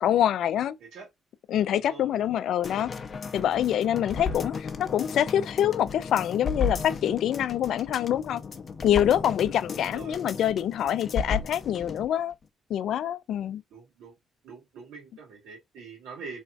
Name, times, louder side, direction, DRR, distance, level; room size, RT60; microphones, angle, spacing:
voice 1, 0.0-0.8 1.5-2.9 3.3-8.4 8.8-12.3 12.7-13.6, left 10 dB, 75° left, 0.3 m, -25 dB
voice 2, 1.7-2.5 4.0-4.3 9.7-10.2 13.7-14.2 14.4-16.4, right 5 dB, 85° right, 2.3 m, -45 dB
sound 1, 2.6-12.1 12.4-12.5, left 5 dB, 45° left, 0.6 m, -34 dB
3.5 x 3.2 x 2.4 m
cardioid pair, 90°, 0 cm